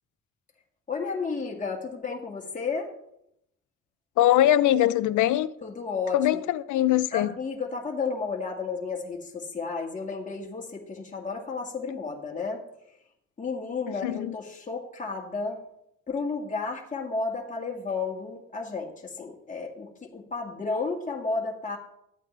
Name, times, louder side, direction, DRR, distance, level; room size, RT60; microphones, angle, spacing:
voice 1, 0.9-2.9 5.6-6.4 7.1-12.6 13.4-15.6 16.1-21.8, left 4 dB, 25° left, 1.9 m, -32 dB
voice 2, 4.2-5.5 6.1-7.3 14.0-14.3, left 13 dB, 80° left, 0.6 m, -22 dB
13.0 x 8.4 x 3.3 m
cardioid pair, 90°, 30 cm